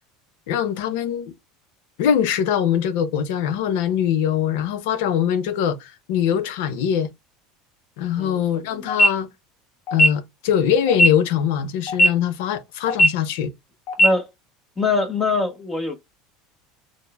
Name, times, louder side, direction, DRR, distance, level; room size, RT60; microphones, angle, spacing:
voice 1, 0.5-1.3 2.0-7.1 8.0-9.3 9.9-13.5, left 9 dB, 75° left, 0.6 m, -22 dB
sound 1, 8.9-9.1 9.9-10.1 10.9-11.1 11.9-12.1 12.9-13.1 13.9-14.1, equal, 55° left, 1.2 m, -15 dB
voice 2, 14.8-16.0, left 3 dB, 15° left, 0.8 m, -23 dB
6.1 x 2.1 x 2.2 m
supercardioid pair, 120°, 0 cm